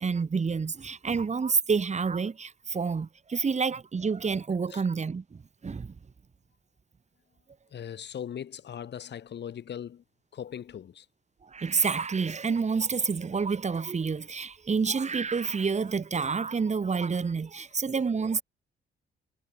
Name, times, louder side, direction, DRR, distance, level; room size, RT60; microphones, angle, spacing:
voice 1, 0.0-5.9 11.4-18.4, right 5 dB, 35° right, 5.0 m, -28 dB
voice 2, 7.7-10.0 10.3-11.1, left 9 dB, 60° left, 6.6 m, -39 dB
cardioid pair, 90°, 20 cm